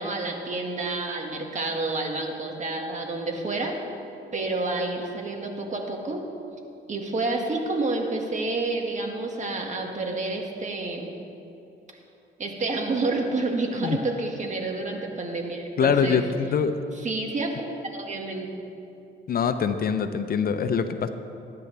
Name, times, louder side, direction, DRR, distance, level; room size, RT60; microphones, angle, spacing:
voice 1, 0.0-3.7 4.3-6.2 6.9-11.1 12.4-16.2 17.0-17.7 17.9-18.7, right 2 dB, 40° right, 1 dB, 1.9 m, -29 dB
voice 2, 15.8-16.8 19.3-21.1, left 6 dB, 50° left, 9 dB, 0.7 m, -24 dB
20.0 x 9.8 x 3.4 m, 2.8 s
cardioid pair, 90°, 20 cm